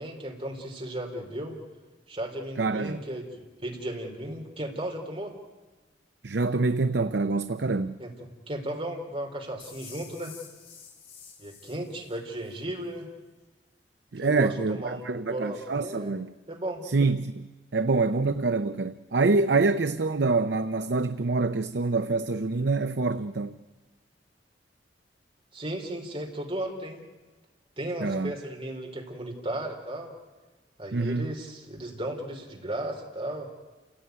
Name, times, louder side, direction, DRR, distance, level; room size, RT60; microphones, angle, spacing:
voice 1, 0.0-1.5 2.1-5.3 8.0-10.3 11.4-13.1 14.2-16.2 16.5-16.8 25.5-27.0 27.8-30.1 30.8-33.5, right 1 dB, 30° right, 3.8 m, -35 dB
voice 2, 2.6-3.0 6.2-8.0 14.1-16.3 16.8-17.5 17.7-23.6 28.0-28.3 30.9-31.3, right 3 dB, 70° right, 0.7 m, -26 dB
sound 1, 9.6-12.6, left 6 dB, 50° left, 6.5 m, -49 dB
28.5 x 17.0 x 9.4 m
head